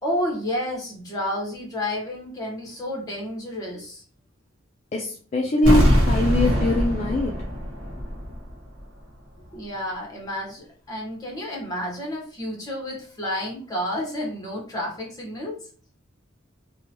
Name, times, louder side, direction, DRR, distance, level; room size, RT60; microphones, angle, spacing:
voice 1, 0.0-4.0 9.5-15.6, left 1 dB, 20° left, -1 dB, 1.0 m, -30 dB
voice 2, 4.9-7.4, left 2 dB, 35° left, 0 dB, 0.3 m, -22 dB
sound 1, 5.6-8.5 8.8-8.9, equal, 80° right, 0.8 m, -22 dB
2.8 x 2.2 x 2.8 m, 0.42 s
head